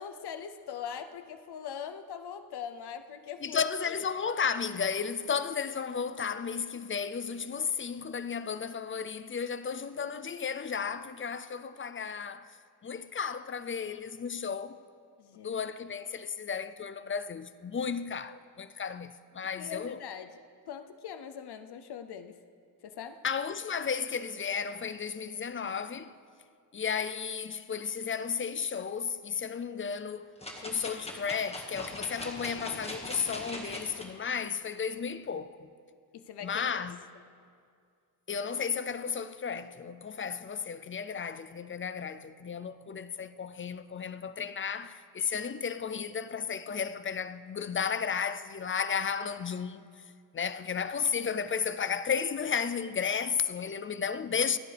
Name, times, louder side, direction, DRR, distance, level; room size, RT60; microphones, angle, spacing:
voice 1, 0.0-3.6 15.2-15.6 19.6-20.3 20.7-22.4 22.8-23.2 36.1-36.8, left 8 dB, 85° left, 0.7 m, -41 dB
voice 2, 3.4-12.5 12.8-14.8 15.4-20.0 23.2-26.1 26.7-30.3 30.6-35.7 36.4-37.0 38.3-50.0 50.3-54.6, left 6 dB, 35° left, 0.4 m, -33 dB
sound 1, 30.4-34.1 34.6-34.7, left 1 dB, 15° left, 1.7 m, -41 dB
26.0 x 9.2 x 3.4 m
wide cardioid pair, 115°, 38 cm